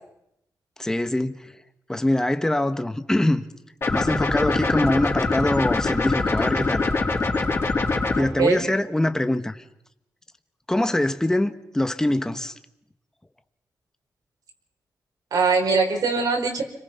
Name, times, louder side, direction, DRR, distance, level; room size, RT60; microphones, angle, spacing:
voice 1, 0.8-1.5 1.9-3.4 3.9-6.9 8.2-9.6 10.7-12.5, left 1 dB, 10° left, 1.4 m, -23 dB
sound 1, 3.8-8.2, left 3 dB, 35° left, 4.2 m, -23 dB
voice 2, 8.2-8.6 15.3-16.6, right 4 dB, 65° right, 5.0 m, -22 dB
30.0 x 23.0 x 5.8 m
wide cardioid pair, 125°, 7 cm